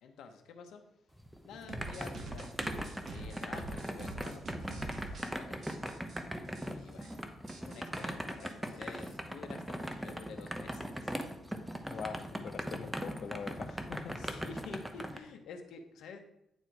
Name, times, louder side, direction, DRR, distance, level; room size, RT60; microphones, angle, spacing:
voice 1, 0.0-0.8 1.4-5.6 6.3-7.1 7.6-11.1 14.1-16.2, left 5 dB, 80° left, 1.0 m, -50 dB
sound 1, 1.2-15.2, equal, 5° right, 0.8 m, -40 dB
sound 2, 1.7-5.3 5.6-6.2 6.5-6.7 6.9-7.1 7.5-9.2, right 2 dB, 50° right, 1.4 m, -45 dB
voice 2, 11.9-14.1 14.5-14.6, left 6 dB, 60° left, 0.6 m, -43 dB
9.0 x 4.5 x 4.6 m
cardioid pair, 105°, 0 cm